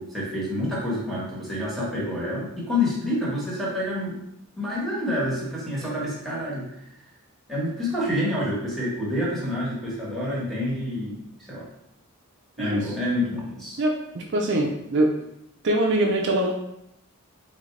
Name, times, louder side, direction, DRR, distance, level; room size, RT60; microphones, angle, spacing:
voice 1, 0.0-4.1 4.6-6.7 7.5-11.2 11.5-11.7 12.6-13.8, left 1 dB, ahead, -7 dB, 1.3 m, -28 dB
voice 2, 13.8-15.1 15.6-16.5, right 1 dB, 55° right, 1 dB, 0.5 m, -23 dB
3.8 x 3.5 x 3.2 m, 0.79 s
head